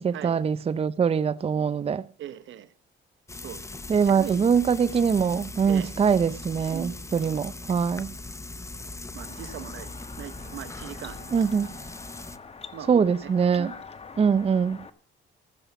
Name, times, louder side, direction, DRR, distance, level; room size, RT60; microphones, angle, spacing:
voice 1, 0.0-2.1 3.9-8.1 11.3-11.7 12.9-13.7 14.2-14.8, right 6 dB, 30° right, 0.5 m, -23 dB
voice 2, 2.2-2.7 3.4-3.6 4.0-4.4 5.7-5.9 6.7-7.1 9.1-11.9 12.7-13.8, right 10 dB, 75° right, 1.0 m, -40 dB
Frying (food), 3.3-12.4, left 2 dB, 15° left, 0.8 m, -40 dB
sound 1, 9.2-14.9, left 5 dB, 30° left, 1.2 m, -45 dB
15.0 x 7.0 x 7.0 m
cardioid pair, 90°, 20 cm